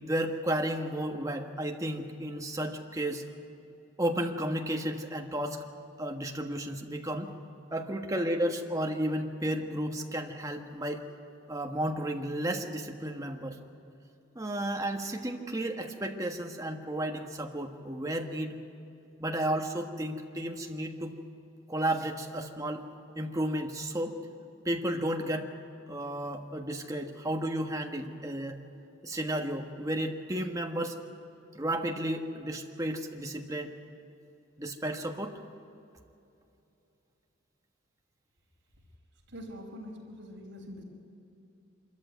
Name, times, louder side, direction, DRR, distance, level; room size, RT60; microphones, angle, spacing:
voice 1, 0.0-3.2 4.0-5.6 6.0-7.3 7.7-11.0 11.5-13.6 14.3-18.5 19.2-21.1 21.7-22.8 23.1-24.1 24.6-25.5 25.9-28.6 29.0-31.0 31.5-33.7 34.6-35.4, right 1 dB, 15° right, 3 dB, 1.4 m, -33 dB
voice 2, 39.3-40.8, equal, 65° right, -1 dB, 4.8 m, -44 dB
25.0 x 14.0 x 9.3 m, 2.8 s
head